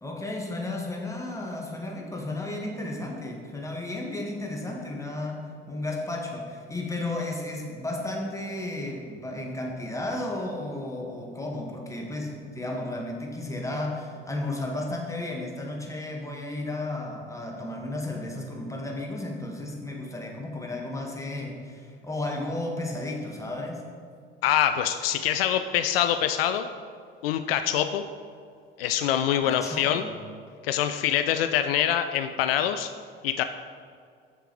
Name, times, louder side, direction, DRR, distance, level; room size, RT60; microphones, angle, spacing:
voice 1, 0.0-23.9 29.4-30.2, left 2 dB, 10° left, 0 dB, 1.8 m, -33 dB
voice 2, 24.4-26.7 27.2-28.0 28.8-30.0 30.6-32.9 33.2-33.4, left 10 dB, 75° left, 8 dB, 0.4 m, -25 dB
7.3 x 6.7 x 4.7 m, 2.2 s
figure-of-eight pair, 55°, 30 cm